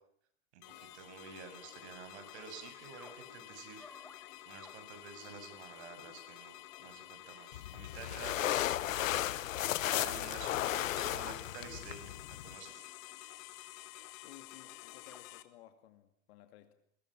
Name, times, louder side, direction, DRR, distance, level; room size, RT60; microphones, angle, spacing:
voice 1, 0.5-3.9 4.5-9.2 9.9-12.1 12.4-12.8, right 5 dB, 60° right, 9 dB, 7.2 m, -50 dB
sound 1, 0.6-15.4, left 17 dB, 40° left, 2.0 m, -51 dB
sound 2, 2.3-3.2 3.8-4.8 5.1-5.2 6.6-6.7 7.1-7.5 8.3-8.5 8.8-9.1 10.6-10.7 12.2-12.4 13.0-13.1 14.6-14.7 15.1-15.2, left 2 dB, 5° left, 1.6 m, -58 dB
sound 3, 7.5-12.5, left 13 dB, 90° left, 1.3 m, -35 dB
voice 2, 14.2-16.7, left 13 dB, 55° left, 8 dB, 2.4 m, -57 dB
29.5 x 22.5 x 7.6 m, 0.66 s
supercardioid pair, 165°, 38 cm